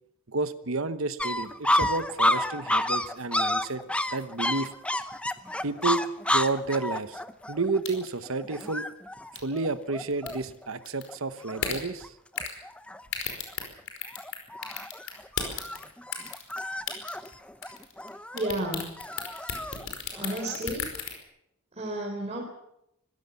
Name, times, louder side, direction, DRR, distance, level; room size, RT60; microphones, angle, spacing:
voice 1, 0.3-3.8 4.1-4.7 5.6-7.2 7.5-8.9 9.3-12.1, right 3 dB, 65° right, 12 dB, 1.1 m, -31 dB
sound 1, 1.2-10.7 11.1-11.2 11.4-12.1 12.4-13.0 13.5-13.8 14.1-20.7, left 1 dB, 5° left, 0.9 m, -30 dB
sound 2, 7.8-8.2 8.6-8.7 9.4-9.6 10.1-10.3 10.9-11.1 11.6-11.8 12.4-12.6 13.1-14.4 14.6-15.8 16.1-16.6 16.9-17.3 17.6-18.1 18.4-21.1, left 7 dB, 65° left, 4.9 m, -33 dB
voice 2, 18.3-18.8 20.2-20.9 21.8-22.4, right 1 dB, 30° right, -2 dB, 3.8 m, -31 dB
24.5 x 16.0 x 7.1 m, 0.81 s
head